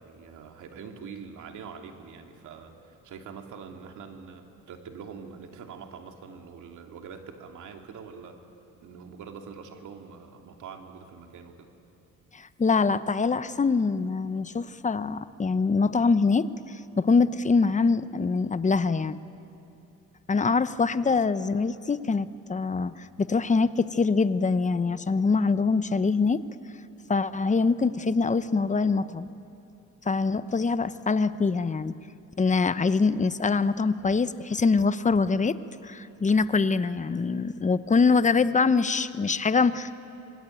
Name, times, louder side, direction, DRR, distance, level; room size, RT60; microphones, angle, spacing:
voice 1, 0.0-8.4 8.8-11.7 21.0-21.2, right 6 dB, 75° right, 4 dB, 2.7 m, -44 dB
voice 2, 12.3-19.2 20.3-26.4 27.1-29.3 30.1-32.0 32.4-35.6 35.8-40.0, left 4 dB, 25° left, 13 dB, 0.9 m, -24 dB
27.0 x 21.0 x 9.2 m, 2.8 s
cardioid pair, 90°, 30 cm